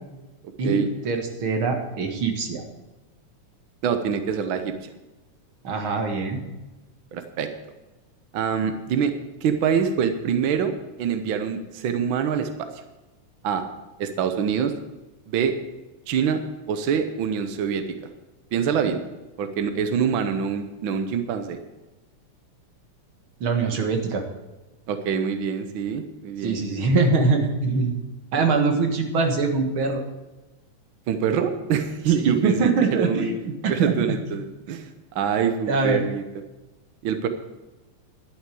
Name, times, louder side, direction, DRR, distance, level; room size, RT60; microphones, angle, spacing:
voice 1, 0.6-2.6 5.6-6.4 23.4-24.2 26.4-27.9 28.3-30.0 32.1-34.2 35.7-36.0, right 4 dB, 50° right, 4 dB, 2.1 m, -23 dB
voice 2, 3.8-4.9 7.1-7.5 8.3-9.1 9.4-10.7 11.0-12.7 13.4-13.6 14.0-14.7 15.3-15.6 16.1-16.4 16.7-18.1 18.5-19.0 19.4-21.6 24.9-26.6 31.1-33.3 33.7-36.2 37.0-37.3, right 7 dB, 80° right, 8 dB, 1.1 m, -25 dB
11.5 x 8.0 x 8.4 m, 1.1 s
omnidirectional pair, 3.4 m